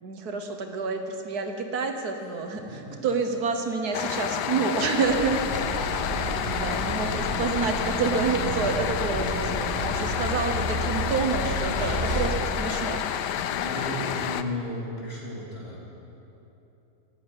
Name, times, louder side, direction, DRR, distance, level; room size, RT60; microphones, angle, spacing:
voice 1, 0.0-5.9 6.4-13.1, right 4 dB, 65° right, 5 dB, 1.5 m, -28 dB
sound 1, 3.9-14.4, left 9 dB, 80° left, 1.2 m, -29 dB
sound 2, 5.0-12.3, right 1 dB, 35° right, 2.6 m, -32 dB
voice 2, 11.6-11.9 13.5-15.8, left 1 dB, 35° left, -6 dB, 3.6 m, -35 dB
14.5 x 9.3 x 9.6 m, 3.0 s
omnidirectional pair, 1.8 m